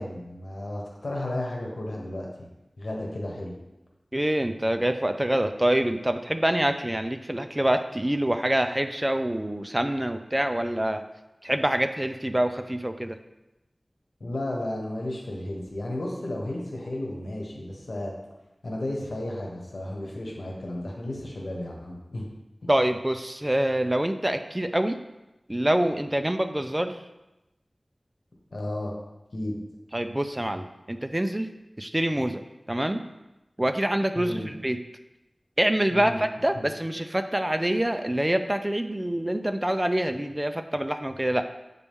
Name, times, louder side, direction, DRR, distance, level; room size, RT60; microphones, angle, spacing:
voice 1, 0.0-2.3 2.8-3.5 14.2-18.1 18.6-22.3 28.5-28.9 29.3-29.6 34.1-34.5 35.9-36.2 36.5-36.7, left 1 dB, 80° left, -2 dB, 1.3 m, -33 dB
voice 2, 4.1-11.0 11.4-13.2 22.7-25.0 25.5-27.0 29.9-31.5 31.8-32.4 32.7-33.0 33.6-34.8 35.6-41.4, right 1 dB, 20° right, 8 dB, 0.5 m, -26 dB
8.3 x 4.1 x 3.6 m, 0.97 s
wide cardioid pair, 55°, 0 cm